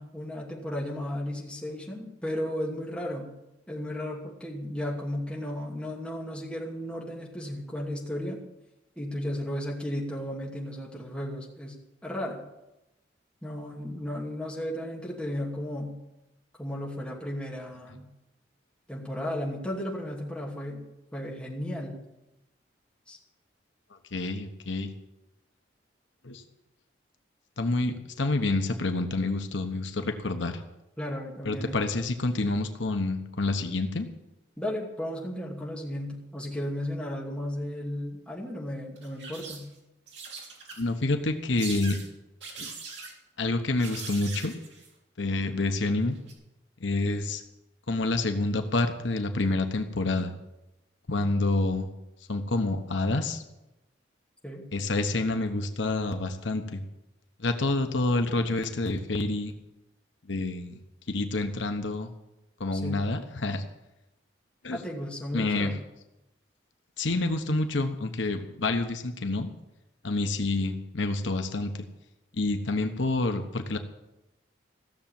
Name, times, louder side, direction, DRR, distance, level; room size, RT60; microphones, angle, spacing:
voice 1, 0.0-3.3 3.7-8.4 9.0-11.7 12.0-12.4 13.4-15.9 16.6-18.1 18.9-20.8 21.1-22.0 23.1-23.2 31.0-31.8 34.6-39.6 54.4-54.6 62.7-63.0 64.7-65.7, left 1 dB, 5° left, -3 dB, 2.6 m, -34 dB
voice 2, 24.1-24.9 26.2-26.4 27.6-30.6 31.4-34.1 40.8-42.0 42.6-42.7 43.4-44.5 45.2-46.2 46.8-47.4 47.9-50.3 51.1-51.9 52.3-53.4 54.7-56.8 57.4-59.5 60.3-60.7 61.1-62.1 62.6-63.6 64.6-64.8 65.3-65.7 67.0-69.5 70.0-71.9 72.3-73.8, left 2 dB, 80° left, 7 dB, 1.1 m, -28 dB
sound 1, 39.0-39.8 40.1-41.0 41.6-42.1 42.4-43.1 43.8-44.9 46.1-46.3, right 4 dB, 70° right, 3.4 m, -41 dB
15.5 x 7.2 x 9.0 m, 0.93 s
head